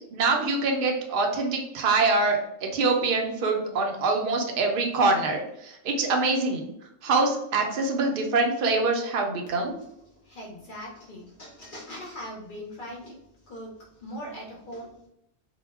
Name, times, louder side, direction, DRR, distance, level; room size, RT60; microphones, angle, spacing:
voice 1, 0.0-6.6 7.0-9.8, right 3 dB, 60° right, 2 dB, 0.6 m, -25 dB
voice 2, 10.2-13.2 13.5-13.7 14.0-15.1, equal, 60° left, -2 dB, 0.6 m, -40 dB
2.2 x 2.0 x 3.3 m, 0.79 s
omnidirectional pair, 1.3 m